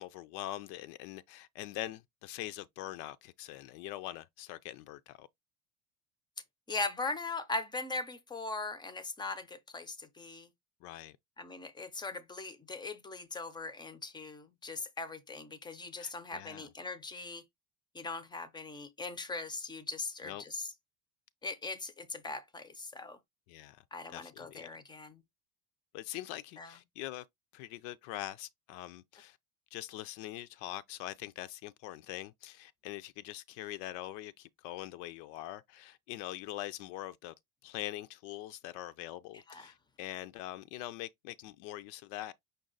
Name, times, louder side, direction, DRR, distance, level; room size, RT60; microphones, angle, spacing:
voice 1, 0.0-5.3 10.8-11.2 16.0-16.7 20.2-20.4 23.5-23.8 24.1-24.7 25.9-27.2 27.5-29.4 29.7-37.3 37.6-42.3, left 14 dB, 85° left, 0.5 m, -43 dB
voice 2, 6.7-10.5 11.4-17.4 17.9-20.7 21.4-23.2 23.9-25.2 26.6-26.7 39.5-39.7, left 3 dB, 10° left, 0.4 m, -40 dB
5.2 x 2.3 x 3.8 m
cardioid pair, 140°, 39 cm